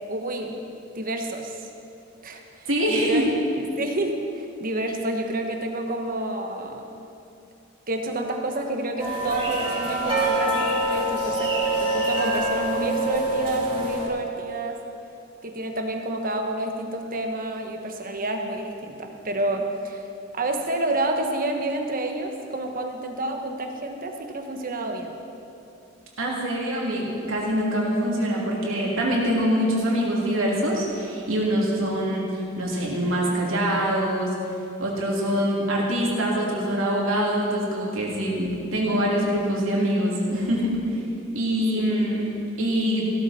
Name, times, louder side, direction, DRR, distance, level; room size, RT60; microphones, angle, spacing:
voice 1, 0.1-0.6 0.9-1.7 2.2-3.2 3.8-6.8 7.9-14.8 15.4-20.1 20.3-25.2 41.7-42.0, right 2 dB, 45° right, 3 dB, 1.3 m, -29 dB
voice 2, 2.7-3.3 26.2-34.3 34.8-40.8 41.3-42.3 42.6-43.1, equal, 75° right, -3 dB, 3.0 m, -24 dB
sound 1, 9.0-14.1, right 1 dB, 25° right, 3.6 m, -25 dB
16.0 x 13.0 x 4.3 m, 2.7 s
head